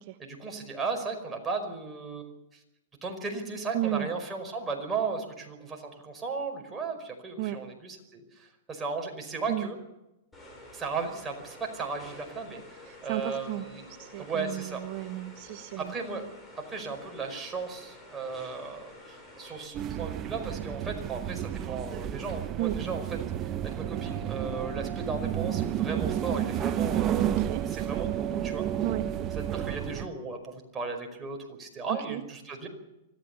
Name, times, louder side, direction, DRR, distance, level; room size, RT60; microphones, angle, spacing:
voice 1, 0.2-2.3 3.0-9.8 10.7-13.8 14.2-14.8 15.8-16.3 16.7-23.0 23.4-28.7 29.5-32.7, right 4 dB, 15° right, 2 dB, 5.2 m, -36 dB
voice 2, 3.7-4.1 7.4-7.6 9.5-9.7 12.8-15.9 22.6-22.7 27.4-27.6 28.8-29.0 31.9-32.2, right 15 dB, 50° right, 8 dB, 1.1 m, -33 dB
sound 1, 10.3-19.7, left 1 dB, 10° left, 7.3 m, -50 dB
sound 2, 19.7-30.1, right 10 dB, 30° right, 1.0 m, -31 dB
25.0 x 15.5 x 7.1 m, 0.94 s
hypercardioid pair, 135°, 0 cm